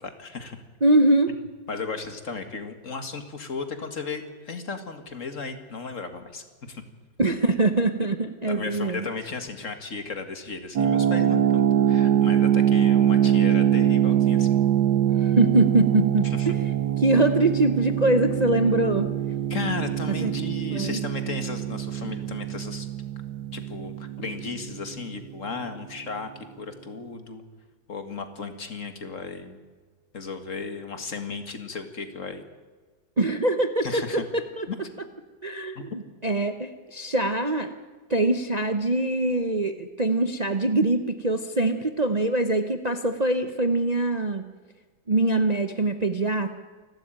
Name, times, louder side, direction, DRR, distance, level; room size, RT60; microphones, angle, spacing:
voice 1, 0.0-0.6 1.7-6.8 8.4-11.6 11.9-14.6 16.2-16.5 19.5-22.9 23.5-27.4 27.9-29.6 30.1-32.4 33.8-34.2 34.7-34.8 35.8-35.9, left 4 dB, 50° left, 8 dB, 2.2 m, -35 dB
voice 2, 0.8-1.4 7.2-9.1 15.1-16.6 17.0-19.1 20.1-20.3 20.7-21.0 33.2-34.7 35.4-37.7 38.1-44.4 45.1-46.5, right 2 dB, 30° right, 8 dB, 0.9 m, -23 dB
sound 1, 10.8-25.5, right 10 dB, 80° right, 1.5 m, -23 dB
28.0 x 13.0 x 9.0 m, 1.4 s
omnidirectional pair, 1.8 m